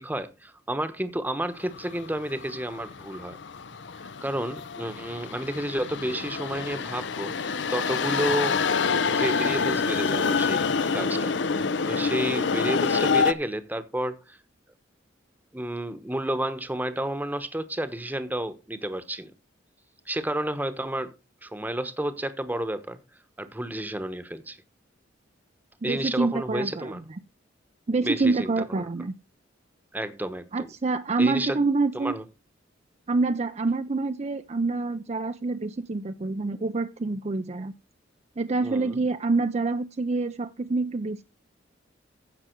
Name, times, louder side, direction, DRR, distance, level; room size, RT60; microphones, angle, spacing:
voice 1, 0.0-3.4 4.2-8.6 9.0-10.7 10.9-14.4 15.5-19.3 20.1-21.1 21.4-23.0 23.4-24.6 25.8-27.0 28.0-28.9 29.9-30.7 31.2-31.6 31.9-32.2 38.6-39.0, right 1 dB, 10° right, 1.0 m, -31 dB
sound 1, 1.7-13.3, left 5 dB, 65° left, 0.7 m, -27 dB
voice 2, 25.8-27.0 27.9-29.1 30.5-32.1 33.1-37.7 38.4-41.2, right 3 dB, 35° right, 0.5 m, -26 dB
15.5 x 6.1 x 4.5 m
head